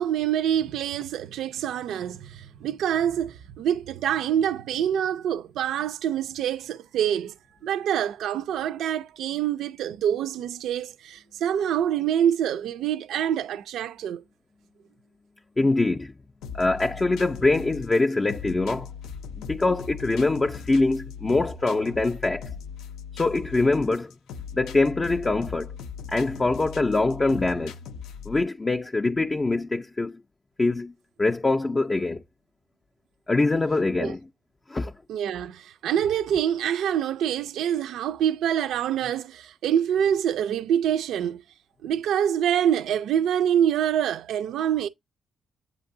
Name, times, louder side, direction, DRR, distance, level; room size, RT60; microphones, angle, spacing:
voice 1, 0.0-7.3 7.6-14.2 34.0-34.1 35.1-41.4 41.8-44.9, right 9 dB, 75° right, 0.3 m, -26 dB
voice 2, 15.6-16.1 16.5-18.9 19.5-22.5 23.1-24.1 24.5-25.7 26.1-27.7 28.3-30.2 30.6-30.9 31.2-32.2 33.3-34.2 34.7-34.9, left 2 dB, 25° left, 0.4 m, -24 dB
sound 1, 16.4-28.4, left 6 dB, 90° left, 0.4 m, -39 dB
7.8 x 2.7 x 2.5 m
cardioid pair, 90°, 0 cm